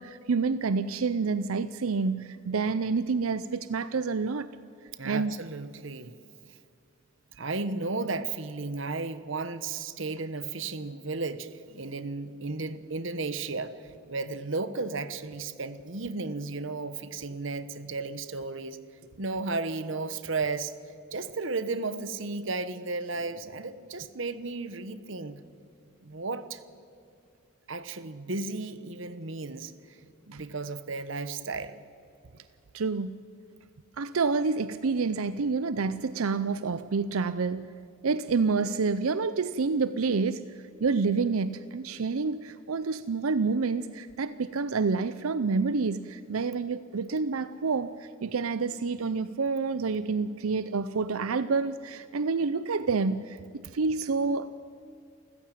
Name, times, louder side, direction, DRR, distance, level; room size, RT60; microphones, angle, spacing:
voice 1, 0.0-4.5 5.0-5.3 30.3-30.4 32.7-33.2 34.0-37.7 38.0-40.4 40.8-53.4 53.7-54.5, right 4 dB, 90° right, 14 dB, 0.6 m, -28 dB
voice 2, 5.0-6.1 6.5-6.6 7.4-18.8 19.2-20.7 21.1-25.4 26.0-26.6 27.7-31.8, right 3 dB, 65° right, 13 dB, 1.2 m, -34 dB
28.5 x 15.0 x 9.2 m, 2.5 s
head